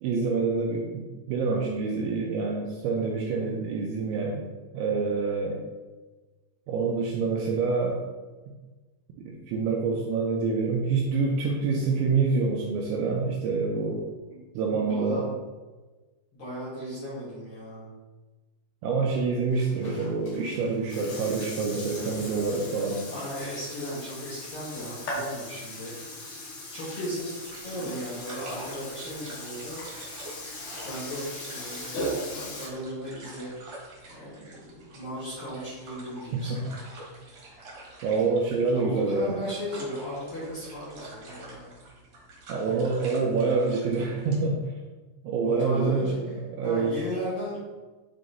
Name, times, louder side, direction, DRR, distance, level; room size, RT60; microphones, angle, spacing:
voice 1, 0.0-4.4 4.7-5.6 6.7-8.0 9.3-14.0 14.5-15.3 18.8-23.0 27.8-27.9 36.5-36.6 38.0-39.4 42.5-44.6 45.2-47.0, right 4 dB, 80° right, -1 dB, 2.7 m, -26 dB
voice 2, 14.7-15.3 16.3-17.9 23.1-25.9 26.7-27.3 27.6-29.8 30.8-33.5 34.1-36.7 38.7-41.7 45.4-46.2 46.6-47.6, equal, 75° left, -8 dB, 2.1 m, -36 dB
Burping eructation, 19.5-32.7, left 1 dB, 55° left, 3.3 m, -38 dB
sound 1, 27.4-44.4, right 2 dB, 60° right, 1.8 m, -47 dB
10.5 x 3.7 x 2.6 m, 1.3 s
omnidirectional pair, 6.0 m